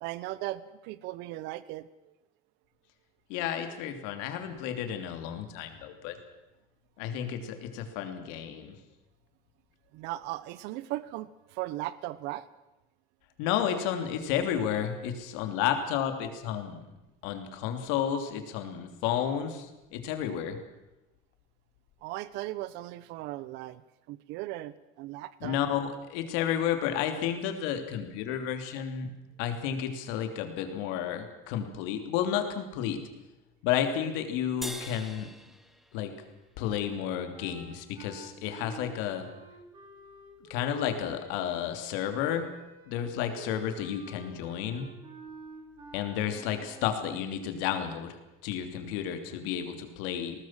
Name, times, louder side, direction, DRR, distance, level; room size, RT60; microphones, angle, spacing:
voice 1, 0.0-2.1 9.9-12.5 22.0-23.8 24.1-25.6, right 16 dB, 65° right, 17 dB, 1.0 m, -37 dB
voice 2, 3.3-6.2 7.0-8.7 13.4-16.9 17.2-20.6 25.4-29.1 29.4-33.0 33.6-35.3 35.9-36.1 36.6-39.3 40.5-42.5 42.9-44.9 45.9-50.5, left 9 dB, 80° left, 7 dB, 3.1 m, -32 dB
sound 1, 34.6-37.2, equal, ahead, 1.2 m, -44 dB
sound 2, 37.3-46.9, right 4 dB, 25° right, 3.8 m, -49 dB
20.5 x 18.5 x 7.5 m, 0.99 s
cardioid pair, 170°, 19 cm